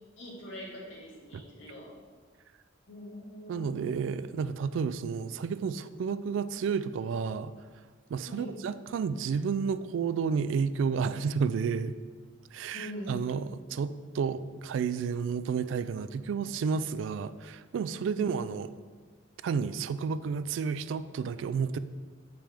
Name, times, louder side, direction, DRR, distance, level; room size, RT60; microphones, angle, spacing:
voice 1, 0.2-2.0 2.9-3.8 8.3-8.6 12.7-13.3 18.1-18.3, equal, 85° left, -5 dB, 1.9 m, -42 dB
voice 2, 3.5-7.5 8.1-11.9 12.5-13.5 13.7-18.7 19.4-21.8, right 6 dB, 80° right, 14 dB, 0.3 m, -31 dB
7.3 x 5.2 x 3.4 m, 1.5 s
head